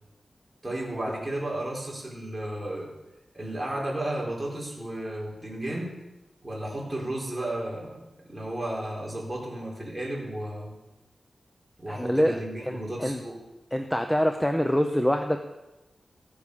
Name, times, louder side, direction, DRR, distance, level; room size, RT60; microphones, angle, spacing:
voice 1, 0.6-2.9 3.3-6.0 6.4-10.7 11.8-13.4, right 1 dB, 15° right, -4 dB, 4.4 m, -33 dB
voice 2, 11.9-12.4 12.7-13.2 13.7-15.4, equal, 5° left, 6 dB, 0.8 m, -25 dB
14.5 x 8.5 x 6.9 m, 1.0 s
wide cardioid pair, 120°, 0 cm